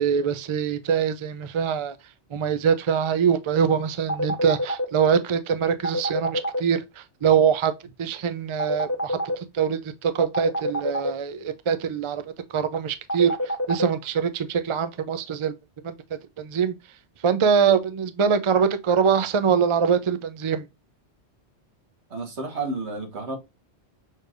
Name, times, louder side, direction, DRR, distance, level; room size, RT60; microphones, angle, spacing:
voice 1, 0.0-2.0 2.3-7.7 8.0-12.2 12.5-13.4 13.7-15.5 15.8-15.9 16.4-16.7 17.2-20.7, right 7 dB, 50° right, 0.3 m, -23 dB
sound 1, 4.1-4.8 5.8-6.6 8.6-9.3 10.3-11.1 13.1-13.8, equal, 15° left, 0.9 m, -26 dB
voice 2, 22.1-23.4, right 3 dB, 70° right, 1.7 m, -31 dB
6.5 x 3.3 x 2.4 m
omnidirectional pair, 1.2 m